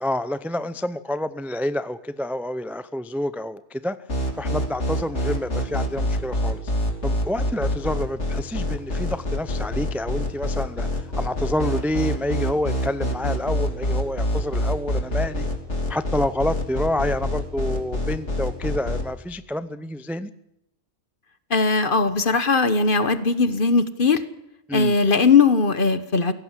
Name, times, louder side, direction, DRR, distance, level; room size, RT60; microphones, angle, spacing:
voice 1, 0.0-4.0 4.4-6.6 7.0-10.9 11.2-15.5 15.9-20.3 24.7-24.9, left 1 dB, ahead, 0.5 m, -28 dB
sound 1, 4.1-19.0, left 1 dB, 70° left, 3.1 m, -25 dB
voice 2, 21.5-24.2 24.7-26.3, left 4 dB, 45° left, 1.4 m, -19 dB
24.5 x 17.5 x 7.5 m
omnidirectional pair, 1.2 m